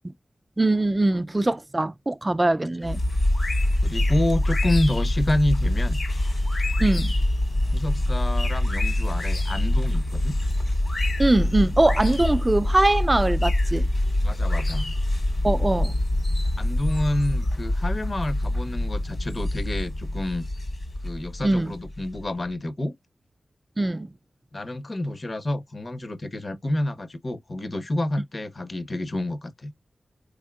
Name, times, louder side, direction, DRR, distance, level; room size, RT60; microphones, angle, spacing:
voice 1, 0.6-3.0 6.8-7.1 11.2-13.9 15.4-15.9 21.4-21.7 23.8-24.1, right 2 dB, 25° right, 0.3 m, -22 dB
sound 1, 2.8-22.3, left 1 dB, 65° left, 2.3 m, -25 dB
voice 2, 3.8-6.0 7.7-10.4 14.2-14.9 16.6-20.4 21.0-22.9 24.5-29.7, left 1 dB, 40° left, 0.8 m, -28 dB
4.1 x 3.6 x 2.3 m
wide cardioid pair, 95°, 0 cm